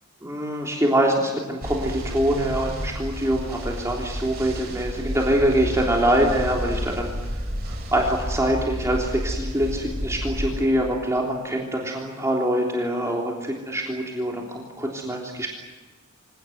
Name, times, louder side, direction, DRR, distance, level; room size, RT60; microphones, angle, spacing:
voice 1, 0.2-7.1 7.6-15.5, right 1 dB, 15° right, -1 dB, 3.4 m, -24 dB
sound 1, 1.6-10.6, equal, 50° right, 7.2 m, -31 dB
26.0 x 18.5 x 9.3 m, 1.2 s
head